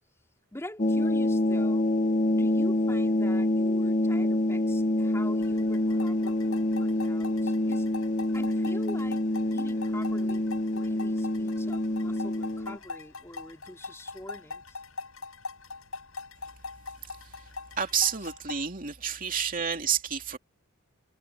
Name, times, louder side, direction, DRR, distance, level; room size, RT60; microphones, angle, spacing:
voice 1, 0.5-1.9 2.3-8.0 8.3-9.2 9.5-14.8, left 1 dB, 15° left, 3.8 m, -44 dB
sound 1, 0.8-12.8, left 1 dB, 35° left, 0.9 m, -26 dB
sound 2, 5.4-18.7, left 4 dB, 80° left, 7.6 m, -42 dB
voice 2, 17.8-20.4, right 7 dB, 40° right, 2.6 m, -30 dB
head